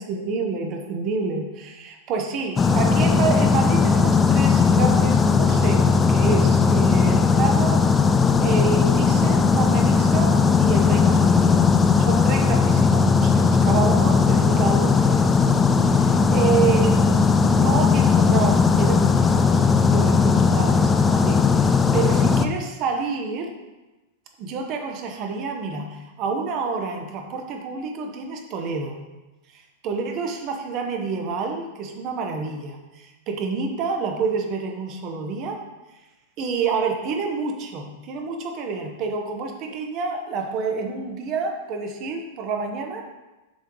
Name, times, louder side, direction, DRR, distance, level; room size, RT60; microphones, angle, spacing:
voice 1, 0.0-7.8 8.4-11.7 12.1-15.4 15.9-23.5 24.4-29.0 29.5-35.6 36.4-43.0, right 4 dB, 40° right, 3 dB, 1.0 m, -28 dB
sound 1, 2.6-22.5, left 5 dB, 15° left, 0.4 m, -18 dB
6.4 x 3.7 x 4.7 m, 1.1 s
figure-of-eight pair, 95°, 0 cm